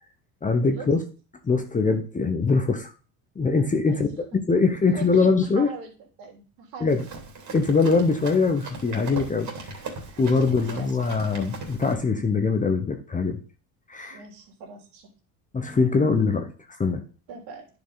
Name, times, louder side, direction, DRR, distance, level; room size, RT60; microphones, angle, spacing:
voice 1, 0.4-1.0 1.4-2.9 3.4-5.7 6.8-7.1 7.5-9.7 10.2-13.4 13.9-14.2 15.5-17.0, left 4 dB, 20° left, 6 dB, 1.1 m, -23 dB
voice 2, 5.6-5.9 6.2-7.0 10.1-10.9 14.1-15.1 17.3-17.7, right 5 dB, 70° right, 1 dB, 3.3 m, -42 dB
Run, 6.9-11.9, right 3 dB, 40° right, 3.2 m, -39 dB
10.0 x 5.1 x 4.1 m, 0.36 s
supercardioid pair, 105°, 43 cm